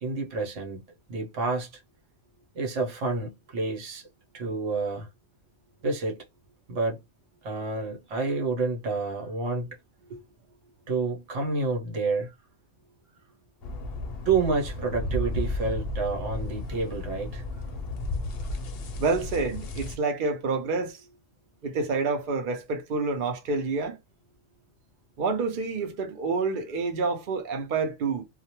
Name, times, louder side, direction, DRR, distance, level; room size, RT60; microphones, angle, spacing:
voice 1, 0.0-0.8 1.1-1.7 2.5-4.1 4.3-5.1 5.8-6.2 6.7-7.0 7.4-9.8 10.9-12.3 14.2-17.4, right 4 dB, 75° right, 1.1 m, -29 dB
sound 1, 13.6-20.0, left 2 dB, 60° left, 0.7 m, -33 dB
voice 2, 19.0-21.0 21.6-24.0 25.2-28.2, right 4 dB, 55° right, 0.6 m, -28 dB
2.3 x 2.1 x 2.8 m
omnidirectional pair, 1.3 m